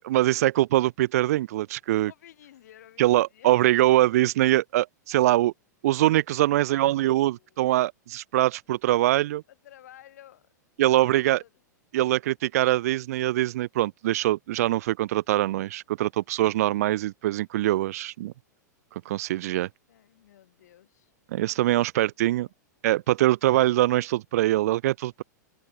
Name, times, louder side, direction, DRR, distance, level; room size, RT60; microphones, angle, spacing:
voice 1, 0.0-2.1 3.0-5.5 5.8-9.4 10.8-11.4 11.9-18.3 19.1-19.7 21.3-22.5 22.8-25.2, right 15 dB, 55° right, 0.5 m, -23 dB
voice 2, 1.9-3.5 6.5-7.7 9.5-10.5 11.0-11.5 19.9-21.1, left 12 dB, 60° left, 3.4 m, -53 dB
figure-of-eight pair, 100°, 10 cm